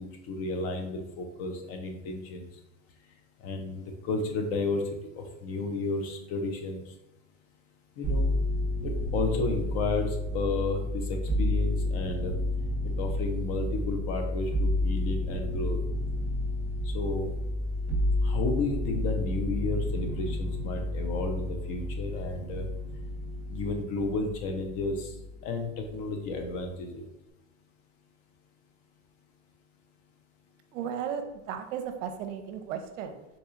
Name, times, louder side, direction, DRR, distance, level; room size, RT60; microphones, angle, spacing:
voice 1, 0.0-2.5 3.4-4.8 5.1-6.8 8.0-8.3 8.8-12.3 13.0-15.8 16.8-17.3 18.2-22.7 23.5-25.1 25.4-27.1, left 3 dB, 40° left, 4 dB, 0.5 m, -32 dB
sound 1, 8.0-25.5 25.8-26.6, left 1 dB, 15° right, 0.9 m, -30 dB
voice 2, 30.7-33.3, right 8 dB, 70° right, 6 dB, 0.6 m, -35 dB
4.0 x 2.7 x 2.4 m, 0.96 s
supercardioid pair, 130°, 39 cm